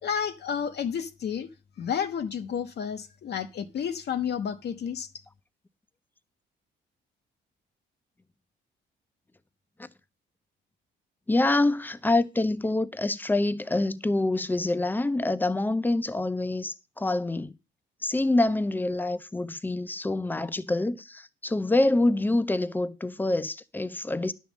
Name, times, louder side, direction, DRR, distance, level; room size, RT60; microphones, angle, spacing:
voice 1, 0.0-1.5 1.8-5.1, left 7 dB, 55° left, 0.8 m, -31 dB
voice 2, 11.3-17.6 18.0-24.3, left 2 dB, 10° left, 0.6 m, -26 dB
10.0 x 3.6 x 7.2 m
cardioid pair, 90°, 20 cm